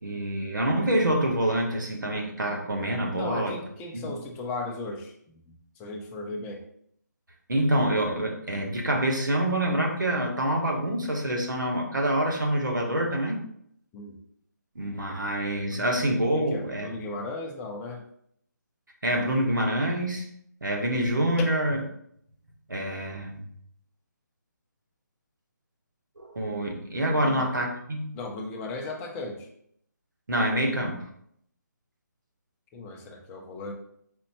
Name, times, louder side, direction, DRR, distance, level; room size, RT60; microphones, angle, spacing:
voice 1, 0.0-3.5 3.9-4.1 7.5-13.4 14.7-16.9 19.0-20.3 20.6-21.8 22.7-23.4 26.2-28.1 30.3-31.0, right 1 dB, 90° right, 1 dB, 1.3 m, -26 dB
voice 2, 3.2-6.6 13.9-14.2 15.7-15.9 16.3-18.0 21.7-21.8 27.1-27.5 28.1-29.5 32.7-33.7, left 2 dB, 10° left, 1 dB, 0.5 m, -36 dB
4.3 x 2.6 x 4.2 m, 0.70 s
figure-of-eight pair, 155°, 10 cm